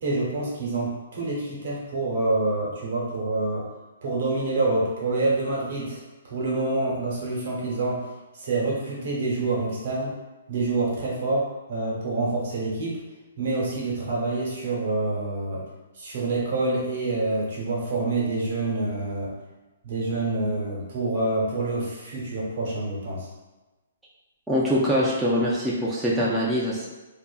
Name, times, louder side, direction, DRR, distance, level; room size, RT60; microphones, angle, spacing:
voice 1, 0.0-3.7 4.0-8.0 8.4-10.1 10.5-13.0 13.4-15.6 16.0-19.3 19.8-23.3, right 2 dB, 60° right, -4 dB, 0.9 m, -27 dB
voice 2, 24.5-26.9, equal, 5° right, -8 dB, 0.3 m, -23 dB
2.5 x 2.4 x 2.3 m, 1.1 s
hypercardioid pair, 160°, 0 cm